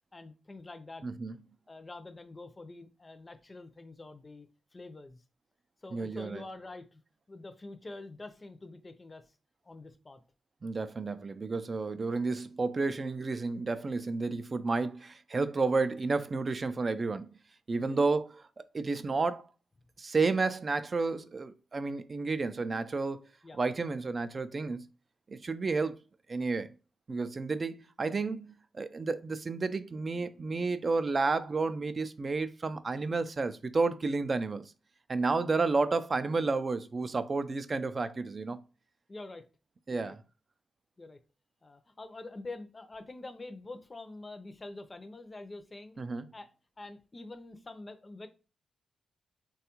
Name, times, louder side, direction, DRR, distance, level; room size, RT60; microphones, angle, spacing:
voice 1, 0.1-1.1 1.7-4.5 4.7-5.2 5.8-7.0 7.3-9.3 9.6-10.2 17.8-18.0 23.4-23.6 39.1-39.4 39.9-40.2 41.0-41.2 41.6-46.0 46.3-46.5 46.8-48.3, left 2 dB, 30° left, 0.5 m, -46 dB
voice 2, 1.0-1.3 5.9-6.4 10.6-17.3 17.7-19.4 20.0-23.2 23.5-24.8 25.3-26.0 26.3-26.7 27.1-34.7 35.1-38.6 39.9-40.2 46.0-46.3, right 3 dB, 40° right, 0.3 m, -31 dB
3.4 x 2.3 x 2.9 m
cardioid pair, 65°, 0 cm